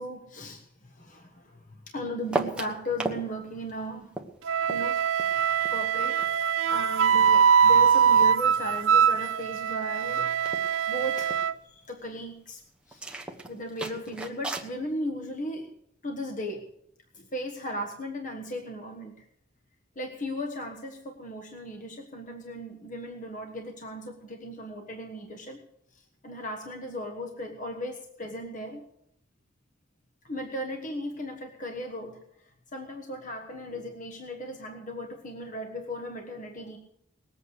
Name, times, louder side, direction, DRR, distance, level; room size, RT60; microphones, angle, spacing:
voice 1, 0.0-4.1 4.7-5.3 5.7-6.3 6.7-10.6 10.9-12.6 12.9-13.0 13.5-15.7 16.0-16.6 17.1-19.2 19.9-25.6 25.9-28.8 30.2-36.8, equal, 45° left, 3 dB, 1.4 m, -37 dB
sound 1, 2.3-3.2 3.5-6.3 6.7-8.4 8.7-9.2 9.5-9.6 9.8-10.1 10.4-11.4 12.9-14.7, right 2 dB, 5° right, 1.3 m, -36 dB
Wind instrument woodwind instrument, 4.4-11.5, right 7 dB, 90° right, 0.5 m, -23 dB
20.0 x 8.2 x 6.5 m, 0.74 s
head